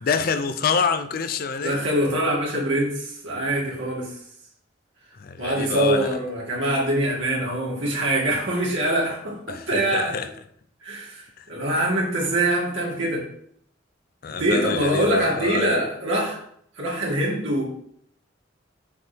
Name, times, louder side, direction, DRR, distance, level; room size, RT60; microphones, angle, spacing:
voice 1, 0.0-1.9 5.2-6.2 9.5-10.3 11.4-11.5 14.2-15.8, left 5 dB, 50° left, 0.4 m, -26 dB
voice 2, 1.6-4.1 5.4-10.1 10.8-13.2 14.4-16.4 16.8-17.6, right 1 dB, 80° right, 2.3 m, -24 dB
6.3 x 4.5 x 3.5 m
head